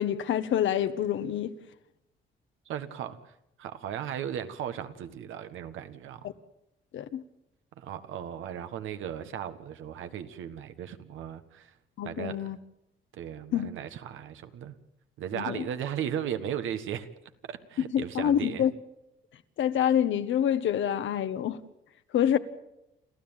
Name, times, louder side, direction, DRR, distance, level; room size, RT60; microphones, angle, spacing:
voice 1, 0.0-1.5 6.2-6.3 6.9-7.2 12.0-12.6 13.5-13.7 15.3-15.6 17.9-18.7 19.6-21.6 22.1-22.4, left 10 dB, 75° left, 1.4 m, -27 dB
voice 2, 2.7-3.3 3.6-6.3 7.8-11.7 12.0-12.5 13.1-14.7 15.2-17.1 17.4-18.6, right 9 dB, 80° right, 1.6 m, -36 dB
29.5 x 13.5 x 9.0 m
cardioid pair, 90°, 20 cm